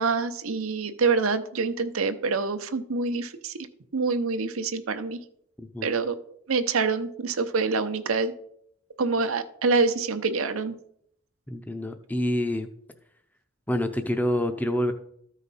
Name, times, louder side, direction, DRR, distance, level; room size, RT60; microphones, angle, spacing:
voice 1, 0.0-3.5 3.9-5.2 5.8-6.2 6.5-8.3 9.0-10.7, right 4 dB, 90° right, 9 dB, 0.8 m, -26 dB
voice 2, 5.6-5.9 11.5-12.7 13.7-14.9, left 1 dB, 10° left, 8 dB, 0.5 m, -27 dB
13.5 x 5.0 x 4.1 m, 0.69 s
head